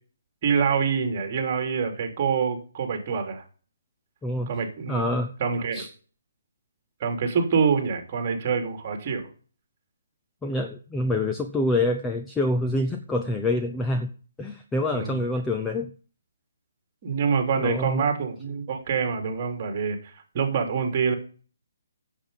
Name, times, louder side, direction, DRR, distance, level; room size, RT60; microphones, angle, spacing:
voice 1, 0.4-3.4 4.5-5.0 5.4-5.8 7.0-9.2 14.9-15.2 17.0-20.0 20.3-21.1, right 6 dB, 30° right, 5 dB, 3.2 m, -25 dB
voice 2, 4.2-4.5 4.9-5.3 5.7-5.9 10.4-15.9 17.6-18.1, left 2 dB, 5° left, 4 dB, 0.7 m, -26 dB
10.0 x 7.6 x 6.9 m, 0.40 s
hypercardioid pair, 165°, 0 cm